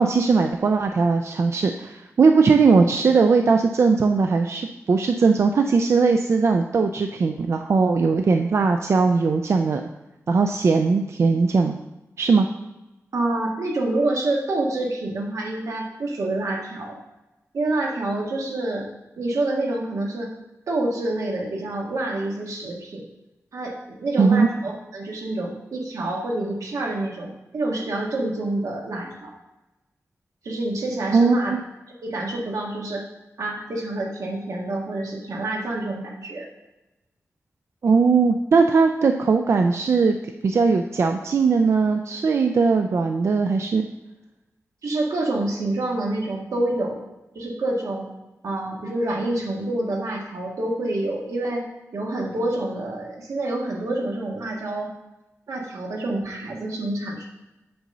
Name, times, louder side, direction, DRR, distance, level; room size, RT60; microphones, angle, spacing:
voice 1, 0.0-9.8 10.3-11.7 12.2-12.5 24.2-24.5 31.1-31.6 37.8-40.2 40.4-43.9, right 4 dB, 55° right, 5 dB, 0.4 m, -19 dB
voice 2, 13.1-16.9 17.5-18.9 19.2-20.3 20.7-23.1 23.5-29.3 30.4-31.5 32.0-33.1 33.4-36.5 44.8-47.0 47.3-48.1 48.4-51.6 51.9-54.9 55.5-57.3, right 2 dB, 85° right, -1 dB, 1.6 m, -27 dB
7.8 x 4.0 x 6.6 m, 1.0 s
wide cardioid pair, 160°, 5 cm